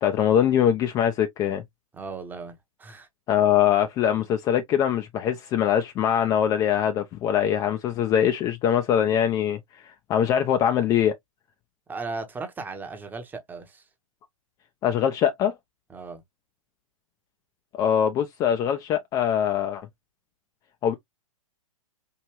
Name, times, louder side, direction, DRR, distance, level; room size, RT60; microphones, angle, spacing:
voice 1, 0.0-1.6 3.3-11.1 14.8-15.5 17.7-19.9 20.8-21.0, left 9 dB, 20° left, 0.5 m, -23 dB
voice 2, 1.9-3.1 11.9-13.8 15.9-16.2, right 4 dB, 10° right, 0.9 m, -36 dB
4.6 x 2.6 x 3.1 m
figure-of-eight pair, 115°, 18 cm